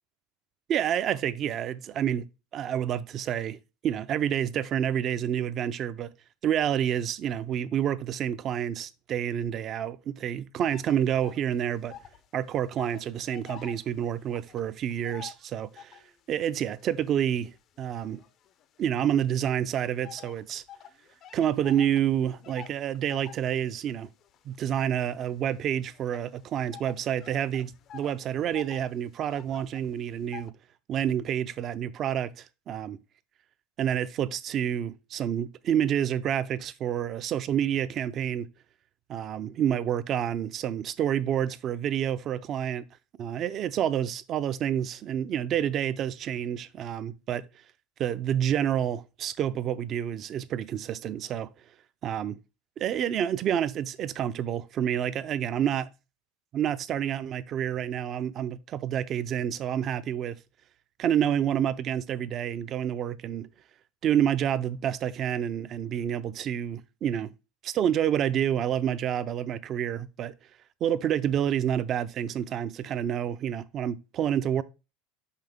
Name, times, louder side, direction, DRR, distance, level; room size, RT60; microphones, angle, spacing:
voice 1, 0.7-2.2 2.5-6.1 6.4-12.0 12.3-16.0 16.3-17.5 17.8-18.2 18.8-20.6 21.3-24.1 24.5-30.5 30.9-33.0 33.8-38.5 39.1-42.8 43.2-47.4 48.0-51.5 52.0-52.4 52.8-55.9 56.5-60.4 61.0-63.5 64.0-67.3 67.6-70.3 70.8-74.6, right 9 dB, 30° right, 0.4 m, -28 dB
sound 1, 10.7-12.3 12.5-16.2 16.8-18.8 19.5-30.5, left 9 dB, 35° left, 0.5 m, -49 dB
5.7 x 5.6 x 3.4 m
supercardioid pair, 155°, 0 cm